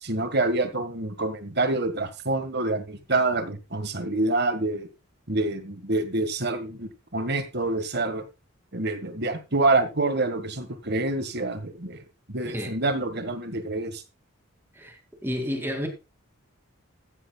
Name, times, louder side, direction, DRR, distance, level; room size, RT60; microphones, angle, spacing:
voice 1, 0.0-4.9 5.3-8.2 8.7-12.0 12.3-14.0, right 2 dB, 50° right, 1.6 m, -27 dB
voice 2, 15.2-15.9, equal, 10° right, 2.3 m, -30 dB
14.0 x 10.5 x 2.3 m
head